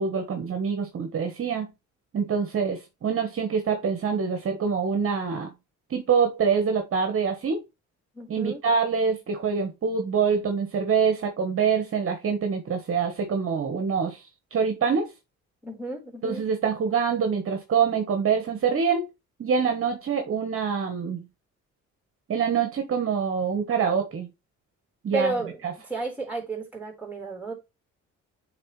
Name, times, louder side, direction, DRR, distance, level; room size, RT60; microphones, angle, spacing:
voice 1, 0.0-1.7 2.1-5.5 5.9-7.6 8.3-15.1 16.2-19.1 19.4-21.3 22.3-24.3 25.0-25.3 25.6-25.7, right 6 dB, 45° right, 1.1 m, -25 dB
voice 2, 8.1-8.6 15.6-16.5 25.1-25.6 25.9-27.5, right 3 dB, 5° right, 3.9 m, -32 dB
8.8 x 3.5 x 3.1 m
cardioid pair, 90°, 30 cm